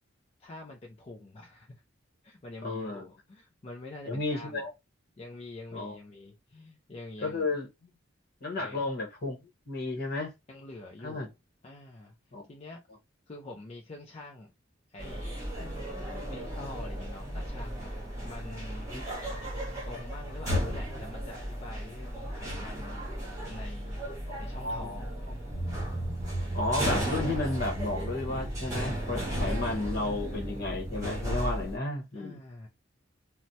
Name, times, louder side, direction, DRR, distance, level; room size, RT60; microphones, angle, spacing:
voice 1, 0.4-1.8 2.2-4.7 5.2-7.5 8.6-8.8 10.5-11.3 11.6-12.1 12.5-12.8 13.3-14.5 14.9-15.3 16.3-17.9 18.2-19.0 19.9-23.1 23.5-24.0 24.4-25.1 32.1-32.7, left 2 dB, 35° left, 0.5 m, -45 dB
voice 2, 2.6-3.0 4.1-4.7 5.7-6.0 7.2-7.9 8.4-9.4 9.7-10.3 11.0-11.3 12.3-12.4 15.6-15.7 18.9-19.0 24.3-24.9 26.5-32.4, left 2 dB, 55° left, 1.1 m, -33 dB
sound 1, 15.0-31.8, equal, 15° right, 1.2 m, -35 dB
sound 2, 25.5-31.0, right 1 dB, 35° right, 0.5 m, -38 dB
3.2 x 2.1 x 2.7 m
head